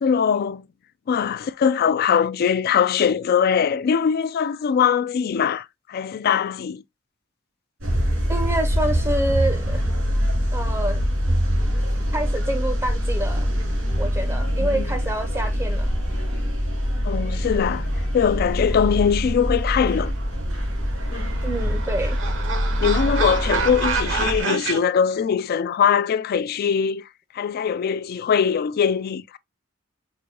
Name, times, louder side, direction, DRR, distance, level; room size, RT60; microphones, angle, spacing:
voice 1, 0.0-0.6 1.1-6.8 14.6-14.9 17.0-17.9 18.1-20.1 21.1-21.4 22.8-27.0 27.3-29.4, left 7 dB, 50° left, 0.3 m, -21 dB
sound 1, 7.8-24.4, equal, 90° right, 2.6 m, -24 dB
voice 2, 8.3-9.9 10.5-11.0 12.1-13.5 14.0-15.9 21.4-22.2, right 1 dB, 15° right, 0.5 m, -27 dB
sound 2, 20.9-24.8, right 5 dB, 70° right, 0.8 m, -28 dB
5.9 x 2.6 x 2.8 m
head